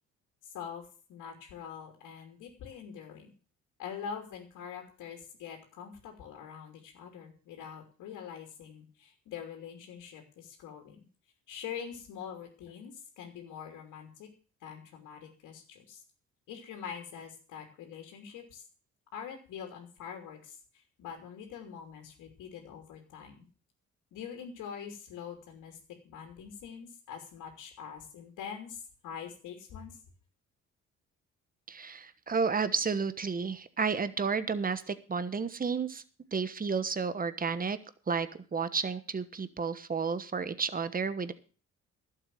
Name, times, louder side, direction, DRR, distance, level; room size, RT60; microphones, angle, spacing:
voice 1, 0.4-3.3 3.8-11.0 11.5-14.3 14.6-16.0 16.5-18.6 19.1-23.5 24.1-25.8 26.0-30.0, left 7 dB, 90° left, 2 dB, 3.0 m, -44 dB
voice 2, 31.7-36.0 36.3-37.8 38.1-41.3, right 5 dB, 30° right, 13 dB, 1.3 m, -31 dB
12.0 x 7.8 x 7.6 m, 0.39 s
cardioid pair, 90°, 30 cm